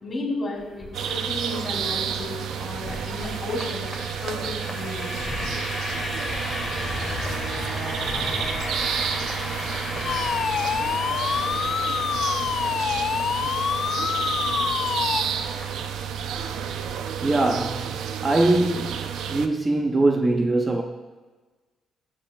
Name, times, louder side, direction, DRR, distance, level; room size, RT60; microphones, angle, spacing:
voice 1, 0.0-3.9 4.2-5.1, left 2 dB, 35° left, 3.1 m, -33 dB
sound 1, 0.6-17.6, left 2 dB, 20° left, 1.8 m, -35 dB
sound 2, 0.9-19.5, right 8 dB, 80° right, 0.5 m, -30 dB
sound 3, 10.0-15.2, left 7 dB, 55° left, 0.4 m, -26 dB
voice 2, 17.2-17.9 18.2-20.8, right 2 dB, 25° right, 0.6 m, -22 dB
15.0 x 7.4 x 2.3 m
cardioid pair, 90°, 0 cm